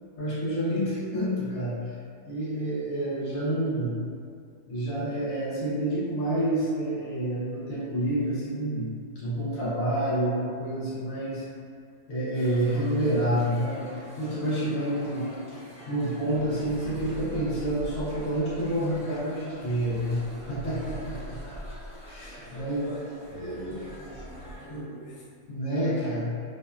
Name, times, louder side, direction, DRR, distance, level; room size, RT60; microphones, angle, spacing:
voice 1, 0.2-1.8 2.3-3.9 4.7-11.4 12.1-13.9 14.2-15.2 15.9-20.2 20.5-21.6 22.1-22.9 23.3-23.8 24.7-24.9 25.5-26.3, right 1 dB, 75° left, -8 dB, 1.2 m, -28 dB
sound 1, 12.3-24.7, right 1 dB, 5° right, 0.5 m, -47 dB
voice 2, 14.8-15.4 22.2-25.2, left 1 dB, 55° left, -7 dB, 0.7 m, -45 dB
sound 2, 16.3-24.6, equal, 60° right, 0.8 m, -43 dB
2.9 x 2.1 x 2.3 m, 2.3 s
omnidirectional pair, 1.4 m